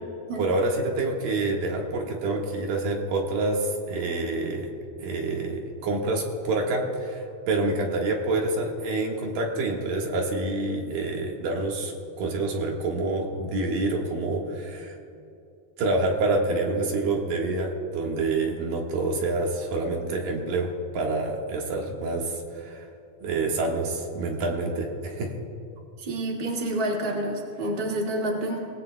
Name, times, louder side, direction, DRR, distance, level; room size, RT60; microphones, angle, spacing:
voice 1, 0.4-4.7 5.0-11.9 12.2-15.0 15.8-22.9 23.2-25.3, right 2 dB, 65° right, 0 dB, 3.1 m, -27 dB
voice 2, 26.0-28.6, right 1 dB, 20° right, -1 dB, 1.3 m, -28 dB
26.5 x 18.5 x 2.2 m, 2.7 s
omnidirectional pair, 4.4 m